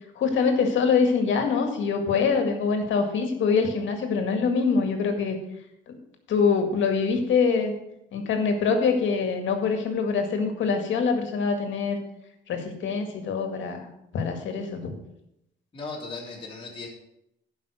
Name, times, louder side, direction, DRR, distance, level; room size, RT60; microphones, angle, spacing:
voice 1, 0.2-5.4 5.9-6.0 6.3-7.7 8.1-12.0 12.5-13.9 14.1-14.9, left 5 dB, 75° left, 5 dB, 2.0 m, -24 dB
voice 2, 15.7-16.9, left 3 dB, 25° left, -4 dB, 3.3 m, -37 dB
11.5 x 5.6 x 6.4 m, 0.81 s
cardioid pair, 90°, 20 cm